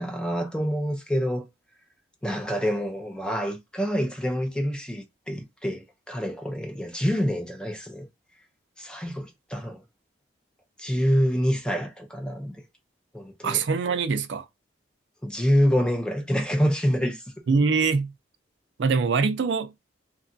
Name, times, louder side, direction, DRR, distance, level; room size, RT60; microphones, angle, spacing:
voice 1, 0.0-1.5 2.2-8.1 8.8-9.8 10.8-12.6 13.1-13.6 15.2-17.2, equal, 5° left, 0.4 m, -26 dB
voice 2, 13.4-14.5 17.5-18.1 18.8-19.8, right 4 dB, 70° right, 0.4 m, -23 dB
2.8 x 2.3 x 2.5 m
head